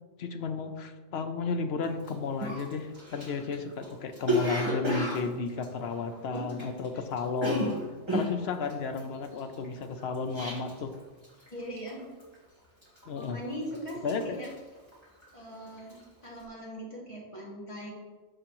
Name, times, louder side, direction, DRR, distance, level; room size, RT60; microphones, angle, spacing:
voice 1, 0.2-7.8 8.1-10.9 13.1-13.4 14.0-14.2, left 4 dB, 60° left, 7 dB, 0.9 m, -33 dB
Cough, 2.0-2.1 2.4-6.9 7.1-10.9 11.2-11.6 11.9-12.3 12.8-13.4 13.7-15.4 15.7-16.0, left 1 dB, 20° right, 1.8 m, -32 dB
voice 2, 11.5-12.1 13.2-14.5 15.3-17.9, equal, 25° left, -4 dB, 2.2 m, -40 dB
13.0 x 4.9 x 3.0 m, 1.3 s
omnidirectional pair, 1.3 m